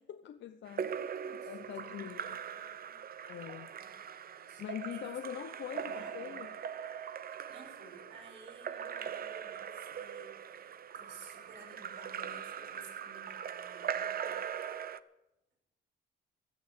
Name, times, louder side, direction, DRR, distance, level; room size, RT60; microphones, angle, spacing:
voice 1, 0.0-0.9 1.4-2.4 3.3-3.7 4.6-6.5, left 10 dB, 65° left, 0.8 m, -43 dB
Splash splatter / Drip / Trickle dribble, 0.7-15.0, right 8 dB, 50° right, 0.8 m, -41 dB
voice 2, 0.8-3.5 3.8-4.6 4.9-5.2 5.6-6.3 7.5-14.4, right 3 dB, 75° right, 6.2 m, -56 dB
16.0 x 11.0 x 6.3 m
cardioid pair, 90°, 20 cm